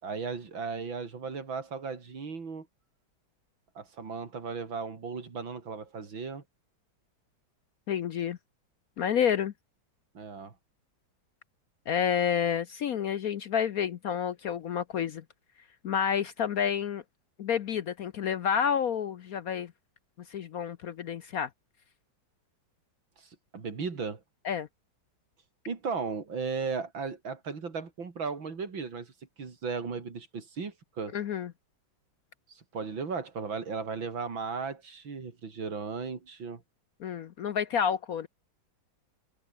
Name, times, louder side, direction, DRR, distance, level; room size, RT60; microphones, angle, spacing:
voice 1, 0.0-2.7 3.8-6.4 10.1-10.5 23.2-24.2 25.7-29.1 29.4-31.2 32.5-36.6, right 5 dB, 70° right, 3.9 m, -36 dB
voice 2, 7.9-8.4 9.0-9.5 11.9-15.2 15.8-17.0 17.4-19.7 20.3-21.5 24.4-24.7 31.1-31.5 37.0-38.3, left 8 dB, 60° left, 1.0 m, -29 dB
omnidirectional pair, 2.2 m